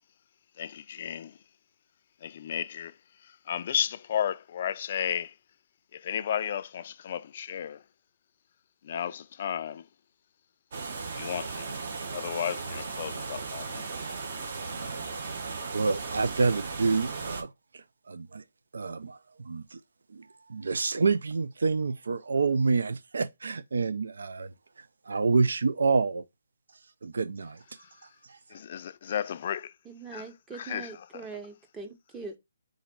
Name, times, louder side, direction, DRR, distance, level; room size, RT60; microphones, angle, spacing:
voice 1, 0.6-1.4 2.2-2.9 3.2-5.3 5.9-7.8 8.8-9.9 11.0-11.8 12.1-14.1 28.5-29.7 30.1-31.3, left 9 dB, 45° left, 0.3 m, -34 dB
sound 1, 10.7-17.4, right 4 dB, 50° right, 1.1 m, -36 dB
voice 2, 15.4-18.4 18.7-19.8 20.1-24.5 25.1-26.2 27.0-27.6 28.3-28.4, right 4 dB, 80° right, 0.4 m, -28 dB
voice 3, 29.9-32.4, right 4 dB, 10° right, 0.7 m, -42 dB
3.9 x 2.6 x 4.4 m
hypercardioid pair, 160°, 0 cm